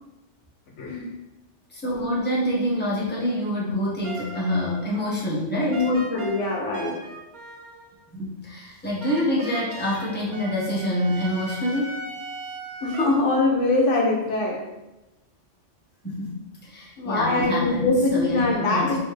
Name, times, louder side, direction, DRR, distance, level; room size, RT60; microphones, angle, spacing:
voice 1, 1.7-5.8 8.1-12.0 16.0-16.4 16.6-19.0, left 1 dB, 10° left, -6 dB, 1.1 m, -26 dB
sound 1, 4.0-5.0 5.7-8.0 9.0-13.1, right 2 dB, 45° right, 0.8 m, -38 dB
voice 2, 5.6-7.0 12.8-14.6 17.0-19.0, left 2 dB, 75° left, 0 dB, 1.1 m, -23 dB
4.2 x 3.6 x 3.2 m, 0.99 s
omnidirectional pair, 1.3 m